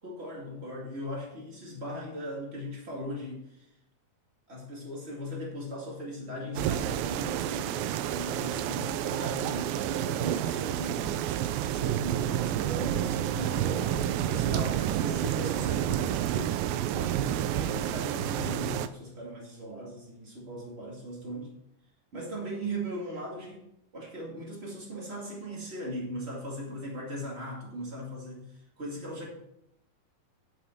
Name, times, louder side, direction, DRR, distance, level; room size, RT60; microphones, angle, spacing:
voice 1, 0.0-3.7 4.5-9.7 10.0-11.1 11.6-16.6 16.9-21.5 22.1-23.6 23.9-29.3, equal, 20° right, -3 dB, 2.0 m, -38 dB
sound 1, 6.6-18.9, right 11 dB, 85° right, 2.3 m, -29 dB
10.0 x 6.2 x 4.6 m, 0.81 s
omnidirectional pair, 4.1 m